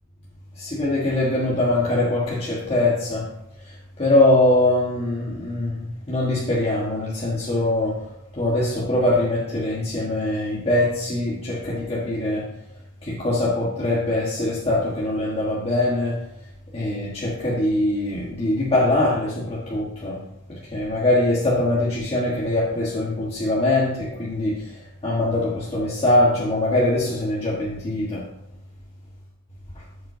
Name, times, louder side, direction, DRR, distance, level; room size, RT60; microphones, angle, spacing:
voice 1, 0.6-3.3 4.0-8.0 8.3-12.5 13.0-16.2 16.7-20.2 20.5-24.7 25.0-28.3, left 1 dB, 25° left, -5 dB, 1.5 m, -22 dB
12.5 x 7.5 x 2.8 m, 0.80 s
head